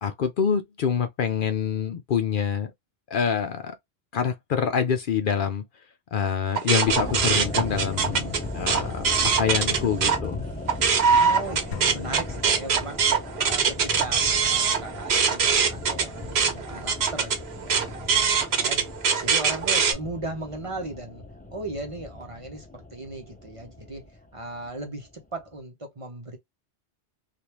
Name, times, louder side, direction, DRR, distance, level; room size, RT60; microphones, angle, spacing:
voice 1, 0.0-2.7 3.1-3.7 4.1-5.6 6.1-9.1 9.4-10.5, left 7 dB, 60° left, 0.7 m, -26 dB
sound 1, 6.6-10.2 10.6-19.9, right 6 dB, 75° right, 1.0 m, -23 dB
sound 2, 6.9-25.1 25.3-25.4, left 2 dB, 10° left, 0.4 m, -37 dB
voice 2, 11.1-13.2 13.4-26.4, right 2 dB, 35° right, 0.8 m, -37 dB
sound 3, 11.7-13.4, left 7 dB, 85° left, 0.9 m, -41 dB
3.3 x 2.5 x 2.8 m
omnidirectional pair, 1.1 m